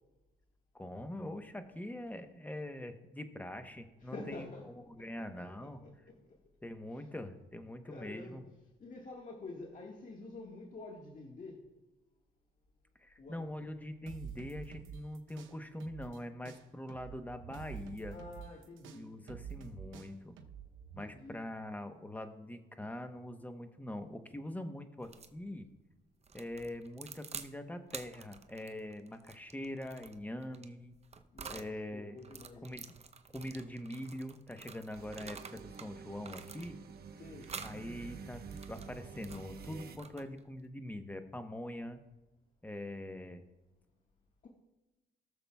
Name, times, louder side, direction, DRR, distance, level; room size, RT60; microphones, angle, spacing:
voice 1, 0.7-4.5 5.0-5.8 6.6-8.4 13.0-18.2 18.9-20.4 20.9-25.7 26.3-30.9 31.5-32.2 32.6-32.9 33.3-36.8 37.6-38.4 38.7-42.0 42.6-43.4, left 1 dB, 10° left, 7 dB, 0.9 m, -43 dB
voice 2, 4.0-4.7 5.0-6.4 6.9-7.1 7.8-8.4 8.8-11.7 13.2-13.4 18.1-19.0 19.8-19.9 20.2-20.3 20.8-21.4 31.2-32.8 37.1-37.6 44.4-44.5, left 3 dB, 40° left, -1 dB, 1.5 m, -49 dB
sound 1, 14.1-16.2 16.4-21.0, right 8 dB, 80° right, 0.8 m, -48 dB
sound 2, 25.0-25.4 26.2-27.5 27.9-31.7 32.2-35.9 36.2-37.0 37.4-37.8 38.3-40.5, right 5 dB, 30° right, 0.7 m, -49 dB
sound 3, 34.9-40.0, right 5 dB, 50° right, 0.9 m, -49 dB
19.0 x 6.9 x 2.3 m, 1.1 s
cardioid pair, 90°, 20 cm